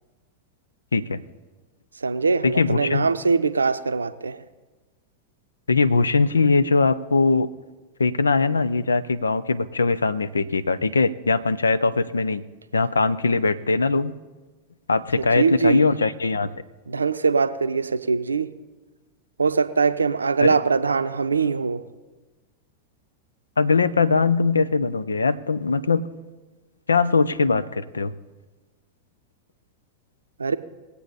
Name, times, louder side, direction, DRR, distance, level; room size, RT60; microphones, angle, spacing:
voice 1, 0.9-1.2 2.4-3.1 5.7-7.5 8.0-12.4 12.7-14.1 14.9-16.5 20.4-20.6 23.6-26.0 26.9-28.1, left 4 dB, 75° left, 15 dB, 0.5 m, -21 dB
voice 2, 2.0-4.4 15.4-15.9 16.9-18.5 19.4-21.8 30.4-30.6, right 5 dB, 75° right, 12 dB, 0.6 m, -22 dB
20.5 x 8.4 x 4.2 m, 1.2 s
figure-of-eight pair, 90°, 0 cm